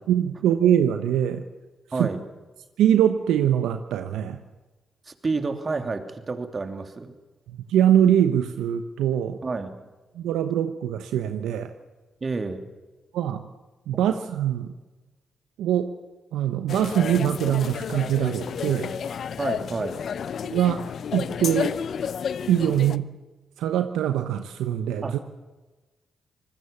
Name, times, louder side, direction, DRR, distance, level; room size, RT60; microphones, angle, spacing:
voice 1, 0.1-1.4 2.0-2.1 2.8-4.4 7.5-9.4 10.1-11.7 13.1-13.4 13.9-14.7 15.6-15.9 16.3-18.9 20.4-20.8 21.1-21.8 22.5-23.1 23.6-25.1, right 10 dB, 85° right, 8 dB, 1.0 m, -23 dB
voice 2, 5.1-7.1 9.4-9.8 12.2-12.7 13.9-14.0 19.4-20.0 25.0-25.2, right 3 dB, 45° right, 7 dB, 3.0 m, -29 dB
sound 1, 16.7-23.0, left 7 dB, 70° left, 0.7 m, -31 dB
25.5 x 20.0 x 7.2 m, 1.2 s
supercardioid pair, 45°, 0 cm